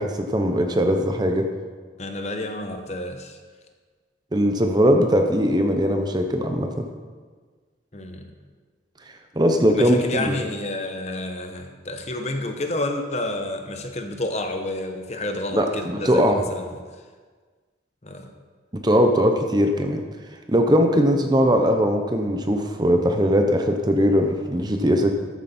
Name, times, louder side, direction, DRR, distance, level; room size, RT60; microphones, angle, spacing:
voice 1, 0.0-1.5 4.3-6.9 9.4-10.0 10.3-10.4 15.5-16.4 18.7-20.0 20.5-25.1, equal, 20° right, 4 dB, 0.8 m, -20 dB
voice 2, 2.0-3.4 7.9-8.4 9.7-16.7 18.0-18.3, left 1 dB, 35° left, 5 dB, 0.9 m, -30 dB
13.5 x 7.9 x 4.3 m, 1.5 s
head